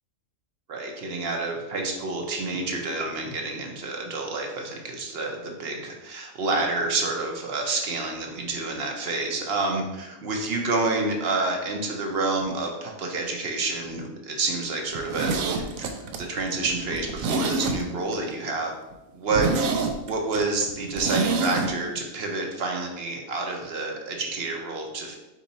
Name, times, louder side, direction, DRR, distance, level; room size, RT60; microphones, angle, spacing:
voice 1, 0.7-15.9 16.2-18.7 19.1-19.5 20.1-25.2, right 3 dB, 55° right, 2 dB, 0.9 m, -28 dB
Zipper (clothing), 14.9-18.2 18.5-18.6 18.9-19.0 19.3-21.7 22.0-22.1, right 3 dB, 85° right, 1.0 m, -27 dB
4.5 x 2.8 x 4.0 m, 1.0 s
omnidirectional pair, 1.4 m